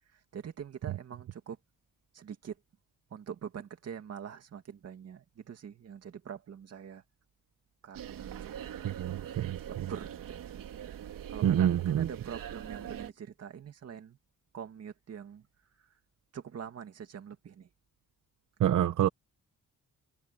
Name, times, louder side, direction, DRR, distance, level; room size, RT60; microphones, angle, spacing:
voice 1, 0.1-1.6 2.1-2.6 3.1-7.0 7.8-8.5 9.7-10.5 11.3-14.2 14.5-15.5 15.8-15.9 16.3-17.7, right 8 dB, 50° right, 2.3 m, -44 dB
sound 1, 7.9-13.1, right 10 dB, 80° right, 2.8 m, -42 dB
voice 2, 8.8-9.6 11.4-12.1 18.6-19.1, right 10 dB, 65° right, 1.2 m, -27 dB
wide cardioid pair, 170°, 33 cm